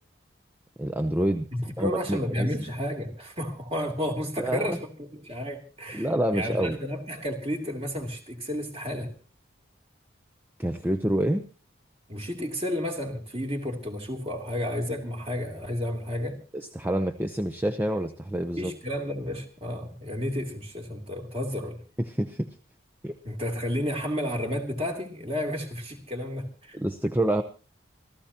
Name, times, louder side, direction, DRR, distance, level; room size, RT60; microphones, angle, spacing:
voice 1, 0.8-1.5 1.8-2.5 4.4-4.8 5.9-6.8 10.6-11.4 16.5-18.7 22.0-22.5 23.0-23.1 26.7-27.4, right 1 dB, 10° right, 6 dB, 0.7 m, -27 dB
voice 2, 1.5-9.1 12.1-16.4 18.6-21.8 23.2-26.8, left 1 dB, 30° right, 2 dB, 3.2 m, -32 dB
26.5 x 14.5 x 2.9 m, 0.37 s
head